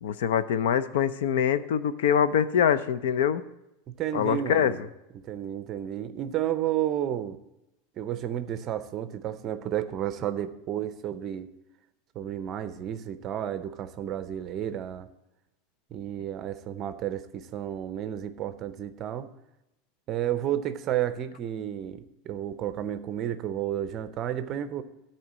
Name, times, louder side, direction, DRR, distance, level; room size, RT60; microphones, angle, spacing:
voice 1, 0.0-3.4 4.1-4.7, left 8 dB, 85° left, 14 dB, 0.6 m, -24 dB
voice 2, 3.9-4.9 5.1-7.4 8.0-11.5 12.1-15.1 15.9-19.3 20.1-24.8, right 11 dB, 25° right, 11 dB, 0.5 m, -32 dB
12.5 x 4.4 x 7.4 m, 0.91 s
supercardioid pair, 180°, 0 cm